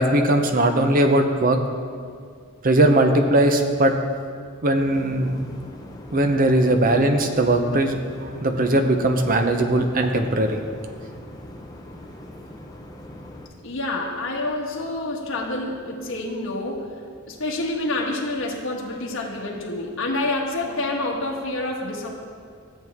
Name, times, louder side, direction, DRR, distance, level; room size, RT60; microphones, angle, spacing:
voice 1, 0.0-1.6 2.6-3.9 4.6-5.4 6.1-10.6, right 1 dB, 40° right, 6 dB, 0.7 m, -19 dB
sound 1, 4.7-13.5, left 1 dB, 20° left, 0.7 m, -41 dB
voice 2, 13.6-17.0 17.3-22.2, left 2 dB, 65° left, -2 dB, 1.4 m, -28 dB
13.5 x 7.6 x 3.6 m, 2.2 s
head